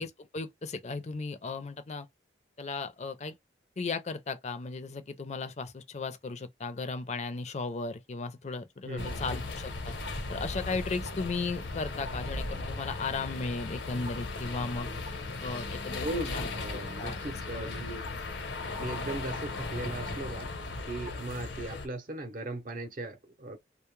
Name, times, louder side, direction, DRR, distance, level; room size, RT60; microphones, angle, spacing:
voice 1, 0.0-2.1 2.6-3.3 3.8-9.9 10.3-14.9 15.4-16.1 16.3-17.2 17.5-17.7, left 4 dB, 40° left, 0.5 m, -36 dB
voice 2, 8.8-9.4 16.0-18.1 18.8-20.5 20.8-23.6, right 2 dB, 50° right, 0.7 m, -38 dB
sound 1, 9.0-21.9, left 3 dB, 85° left, 0.9 m, -37 dB
2.1 x 2.1 x 3.0 m
head